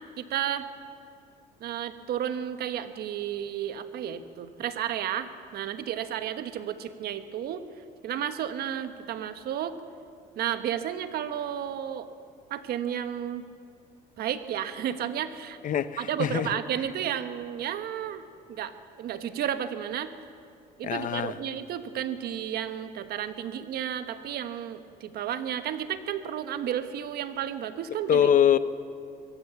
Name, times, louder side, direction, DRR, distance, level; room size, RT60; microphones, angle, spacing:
voice 1, 0.2-0.7 1.6-7.7 8.0-9.7 10.4-12.1 12.5-13.4 14.2-15.6 16.0-18.7 19.0-20.1 20.8-28.2, right 10 dB, 65° right, 10 dB, 1.3 m, -32 dB
voice 2, 15.6-16.5 20.8-21.4 28.1-28.6, left 9 dB, 50° left, 14 dB, 0.8 m, -23 dB
23.0 x 17.0 x 7.2 m, 2.5 s
cardioid pair, 110°, 17 cm